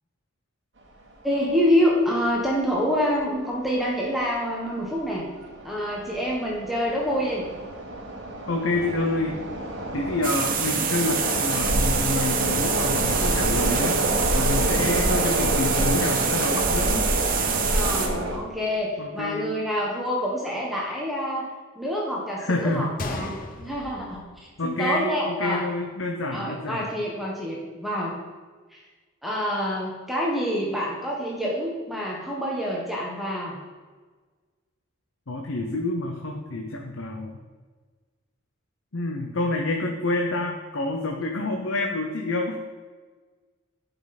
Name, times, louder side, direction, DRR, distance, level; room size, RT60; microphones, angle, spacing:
voice 1, 1.2-5.2 5.6-7.4 17.6-21.5 21.7-24.2 24.6-25.6 26.3-28.1 28.7-28.8 29.2-33.6, equal, ahead, -4 dB, 1.3 m, -27 dB
sound 1, 1.5-1.6 1.8-1.9 2.7-2.9 3.2-3.4 3.9-4.3 4.8-18.4, right 1 dB, 60° right, 1.6 m, -27 dB
voice 2, 8.5-9.3 9.9-14.0 14.3-17.1 19.0-19.5 22.4-22.9 24.6-26.9 35.3-37.4 38.9-42.6, left 2 dB, 75° left, 1 dB, 0.9 m, -28 dB
sound 2, 10.2-18.1, right 7 dB, 45° right, 1.0 m, -27 dB
Gunshot gunfire, 23.0-25.0 25.3-25.4 26.1-26.3, left 2 dB, 45° left, 0.7 m, -36 dB
11.5 x 5.6 x 4.2 m, 1.4 s
head